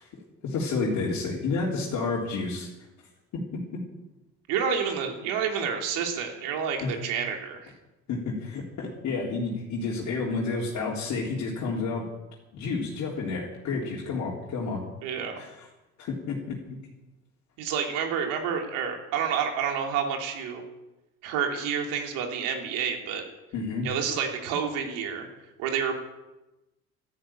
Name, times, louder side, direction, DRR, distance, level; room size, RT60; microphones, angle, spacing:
voice 1, 0.4-2.7 3.3-3.8 6.8-6.9 8.1-12.1 12.5-14.8 15.4-15.5 16.0-16.8 23.5-23.9, left 4 dB, 60° left, -4 dB, 3.7 m, -30 dB
voice 2, 4.5-7.7 15.0-15.4 17.6-20.6 21.2-23.2 23.8-25.3 25.6-25.9, right 7 dB, 90° right, 3 dB, 3.2 m, -29 dB
13.0 x 11.5 x 9.1 m, 0.99 s
cardioid pair, 110°, 31 cm